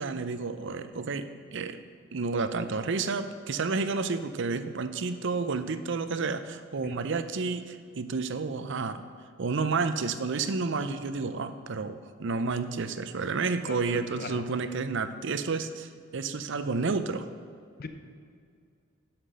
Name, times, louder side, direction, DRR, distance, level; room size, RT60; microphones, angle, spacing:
voice 1, 0.0-1.8 2.1-9.0 9.4-17.3, right 4 dB, 60° right, 11 dB, 0.6 m, -30 dB
voice 2, 13.6-14.4 17.8-17.9, left 3 dB, 50° left, 8 dB, 0.8 m, -39 dB
11.0 x 5.9 x 6.7 m, 2.3 s
head